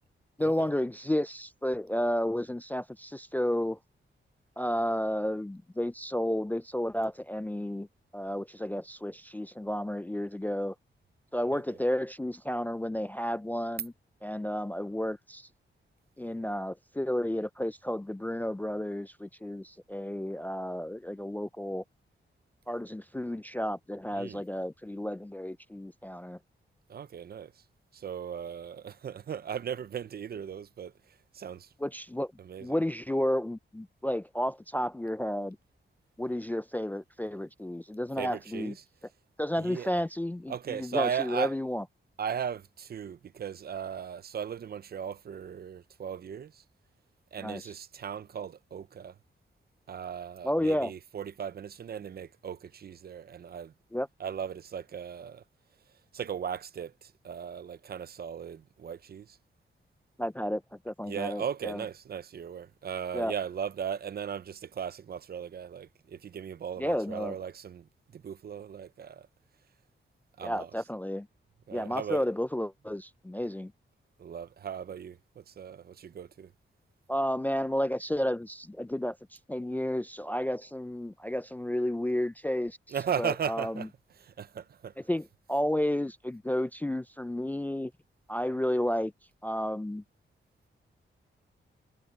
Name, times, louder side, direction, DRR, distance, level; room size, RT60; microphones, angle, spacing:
voice 1, 0.4-3.8 4.6-7.9 8.1-10.7 11.3-13.9 14.2-15.5 16.2-21.8 22.7-26.4 31.8-32.3 32.6-35.6 36.2-38.7 39.4-41.8 47.4-47.7 50.4-50.9 53.9-54.1 60.2-61.8 63.1-63.3 66.8-67.4 70.4-71.3 71.7-73.7 77.1-79.2 79.5-82.8 83.2-83.9 85.1-87.9 88.3-89.1 89.4-90.0, left 1 dB, 10° left, 0.3 m, -32 dB
voice 2, 26.9-27.5 27.9-30.9 31.3-31.7 32.4-32.7 38.2-38.7 39.6-39.9 40.5-41.5 42.2-46.6 47.3-49.1 49.9-53.7 54.2-55.4 56.1-59.4 61.0-67.9 68.1-69.3 70.4-70.7 71.7-72.2 74.2-76.5 82.9-83.9 84.2-84.9, right 8 dB, 50° right, 0.5 m, -37 dB
wide cardioid pair, 180°, 20 cm